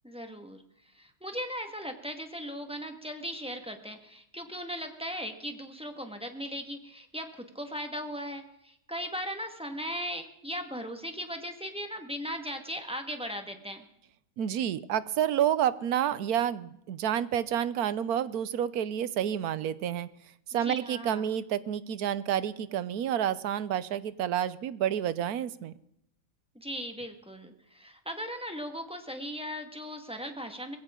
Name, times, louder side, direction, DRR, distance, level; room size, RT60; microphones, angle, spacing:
voice 1, 0.0-13.8 20.5-21.3 26.5-30.8, equal, 5° right, 5 dB, 1.6 m, -38 dB
voice 2, 14.4-20.1 20.5-25.7, right 10 dB, 85° right, 16 dB, 1.3 m, -29 dB
20.5 x 16.5 x 3.8 m, 0.75 s
omnidirectional pair, 1.6 m